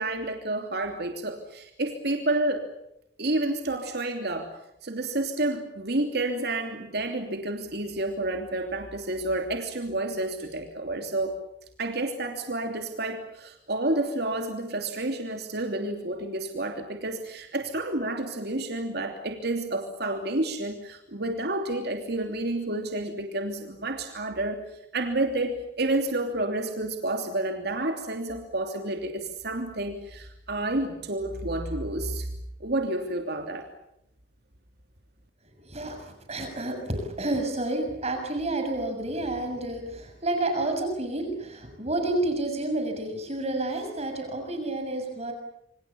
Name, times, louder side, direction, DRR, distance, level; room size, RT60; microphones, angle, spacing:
voice 1, 0.0-2.7 3.2-11.4 11.8-32.3 32.6-33.7, right 2 dB, 65° right, 4 dB, 3.1 m, -30 dB
voice 2, 35.6-45.3, right 2 dB, 40° right, 5 dB, 6.6 m, -30 dB
27.5 x 26.5 x 7.1 m, 0.79 s
head